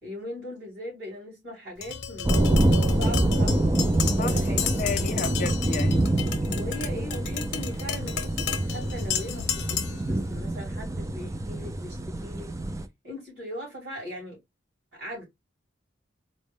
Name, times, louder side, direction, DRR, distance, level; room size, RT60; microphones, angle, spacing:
voice 1, 0.0-2.5 2.9-3.8 4.2-4.7 6.5-12.5 13.0-14.4 14.9-15.2, left 1 dB, 65° right, 2.8 m, -39 dB
Tap, 1.8-10.1, left 7 dB, 80° left, 0.7 m, -32 dB
sound 1, 2.2-12.8, right 1 dB, 15° right, 0.4 m, -26 dB
voice 2, 4.8-6.6, left 5 dB, 45° left, 0.4 m, -33 dB
4.0 x 2.1 x 3.4 m
head